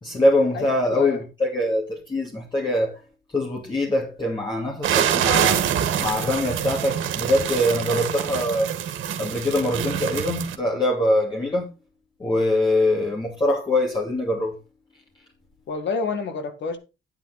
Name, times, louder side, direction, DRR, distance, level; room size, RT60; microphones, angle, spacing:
voice 1, 0.0-3.0 3.3-5.7 6.0-8.7 9.2-11.7 12.2-14.5, left 1 dB, 25° left, 2.6 m, -23 dB
voice 2, 0.5-1.2 15.7-16.8, left 4 dB, 65° left, 1.9 m, -28 dB
sound 1, 4.8-10.6, right 9 dB, 75° right, 1.7 m, -25 dB
9.3 x 8.6 x 4.1 m
cardioid pair, 90°, 20 cm